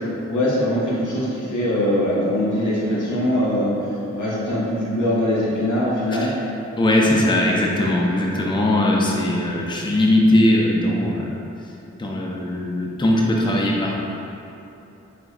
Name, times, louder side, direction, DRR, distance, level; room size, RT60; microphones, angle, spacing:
voice 1, 0.3-6.3, left 1 dB, 85° left, -8 dB, 0.9 m, -22 dB
voice 2, 6.8-11.4 12.0-14.0, left 1 dB, 15° left, -3 dB, 0.4 m, -19 dB
3.6 x 3.0 x 2.3 m, 2.9 s
cardioid pair, 45°, 30 cm